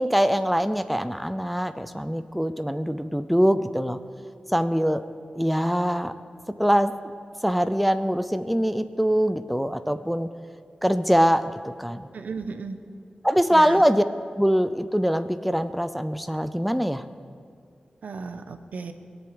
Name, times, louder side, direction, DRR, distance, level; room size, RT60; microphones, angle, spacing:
voice 1, 0.0-4.0 4.5-5.0 5.3-6.1 6.6-6.9 7.4-10.3 10.8-12.1 13.2-14.0 14.4-17.0, equal, ahead, 11 dB, 0.5 m, -23 dB
voice 2, 12.1-12.8 13.5-13.8 18.0-18.9, right 4 dB, 90° right, 8 dB, 1.1 m, -34 dB
21.5 x 7.9 x 7.9 m, 2.3 s
wide cardioid pair, 130°, 3 cm